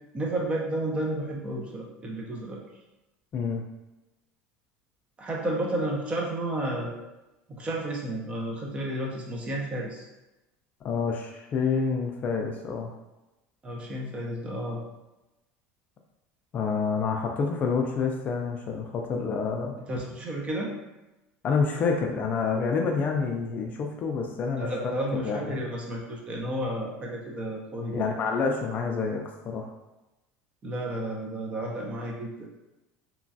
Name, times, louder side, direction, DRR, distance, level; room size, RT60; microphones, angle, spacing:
voice 1, 0.1-2.6 5.2-6.9 7.6-10.1 13.6-14.8 19.9-20.7 24.6-28.0 30.6-32.5, right 1 dB, 25° right, -1 dB, 0.6 m, -32 dB
voice 2, 3.3-3.6 10.8-12.9 16.5-19.8 21.4-25.7 27.9-29.7, left 5 dB, 40° left, 2 dB, 0.4 m, -28 dB
2.9 x 2.3 x 2.6 m, 1.0 s
supercardioid pair, 125°, 5 cm